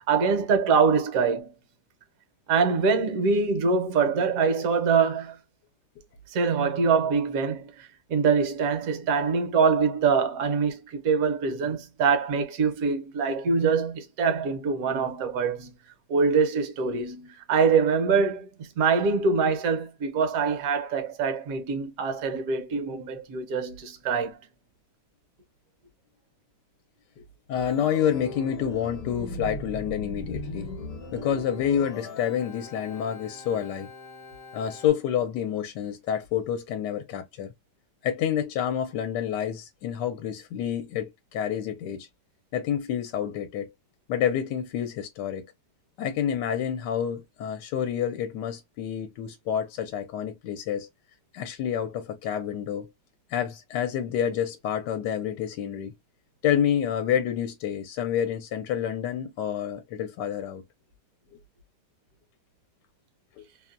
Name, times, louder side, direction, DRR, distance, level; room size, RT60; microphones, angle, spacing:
voice 1, 0.1-1.5 2.5-5.4 6.3-15.7 16.1-24.4, right 5 dB, 60° right, 1.0 m, -24 dB
voice 2, 27.5-30.7 31.1-33.9 34.5-37.5 38.0-42.1 42.5-43.7 44.1-45.5 46.0-50.9 51.3-52.9 53.3-55.9 56.4-60.6 63.4-63.5, left 9 dB, 80° left, 1.2 m, -28 dB
Organ, 27.5-34.9, left 2 dB, 55° left, 1.1 m, -39 dB
2.9 x 2.1 x 2.4 m
omnidirectional pair, 1.8 m